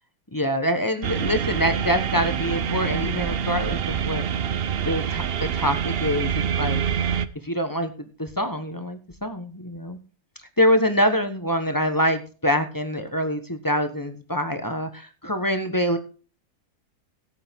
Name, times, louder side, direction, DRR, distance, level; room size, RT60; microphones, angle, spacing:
voice 1, 0.3-4.2 4.8-6.3 6.6-6.8 7.4-7.9 8.2-10.0 10.6-16.0, equal, 15° left, 7 dB, 1.1 m, -25 dB
sound 1, 1.0-7.3, right 8 dB, 55° right, 0.7 m, -26 dB
16.5 x 8.4 x 3.6 m, 0.37 s
omnidirectional pair, 1.6 m